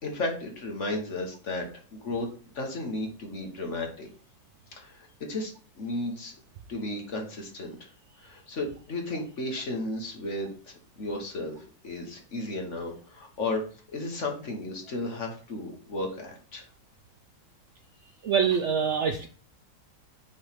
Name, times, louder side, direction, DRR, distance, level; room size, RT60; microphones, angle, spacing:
voice 1, 0.0-2.3 2.5-4.1 4.7-5.5 5.8-6.3 6.7-7.9 8.2-13.6 13.9-16.7, left 2 dB, 45° left, 2 dB, 1.6 m, -34 dB
voice 2, 18.2-19.3, right 6 dB, 90° right, 7 dB, 0.6 m, -25 dB
6.2 x 3.4 x 5.8 m, 0.41 s
omnidirectional pair, 1.9 m